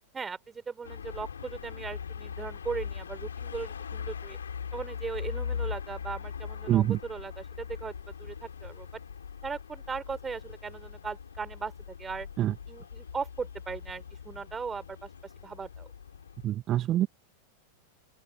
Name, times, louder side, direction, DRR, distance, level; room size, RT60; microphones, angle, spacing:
voice 1, 0.1-4.4 4.7-9.0 9.4-11.7 12.0-12.3 12.7-15.1 15.4-15.9, right 5 dB, 15° right, 4.3 m, -38 dB
sound 1, 0.8-16.5, left 7 dB, 70° left, 5.2 m, -40 dB
voice 2, 6.7-7.0 12.4-12.5 16.4-17.1, right 13 dB, 30° right, 2.0 m, -25 dB
open air
figure-of-eight pair, 90°, 0 cm